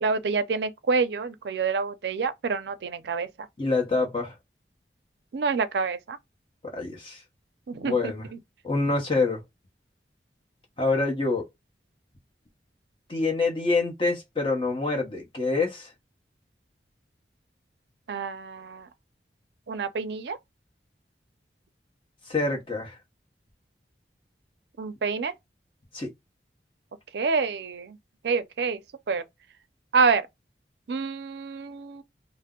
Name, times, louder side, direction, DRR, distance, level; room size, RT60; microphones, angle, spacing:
voice 1, 0.0-3.3 5.3-6.2 7.7-8.0 18.1-18.9 19.7-20.4 24.8-25.3 27.1-28.0 28.2-28.8 29.1-29.2 29.9-30.3 30.9-32.0, right 4 dB, 75° right, 0.4 m, -27 dB
voice 2, 3.6-4.4 6.7-7.2 7.8-8.3 8.6-9.4 10.8-11.4 13.1-15.9 22.3-23.0 25.9-26.1, left 3 dB, 30° left, 0.9 m, -26 dB
2.7 x 2.0 x 3.5 m
head